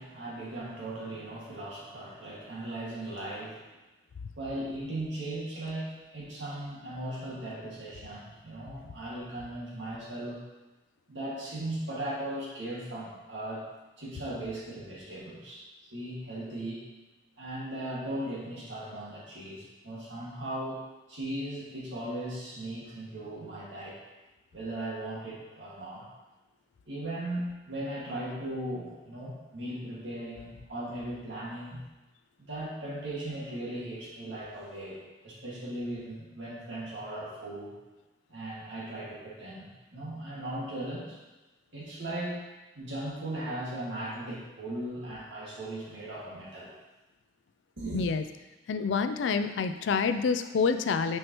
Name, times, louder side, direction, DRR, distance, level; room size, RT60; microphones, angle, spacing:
voice 1, 0.0-3.7 4.4-10.4 11.1-13.7 14.0-15.6 15.9-16.9 17.4-20.8 21.1-24.0 24.5-26.1 26.9-31.8 32.5-37.7 38.3-41.2 41.7-42.4 42.8-46.7 47.8-48.0, right 1 dB, 85° right, -6 dB, 2.0 m, -38 dB
voice 2, 48.7-51.2, left 5 dB, 85° left, 9 dB, 0.4 m, -27 dB
6.4 x 5.5 x 3.0 m, 1.1 s
head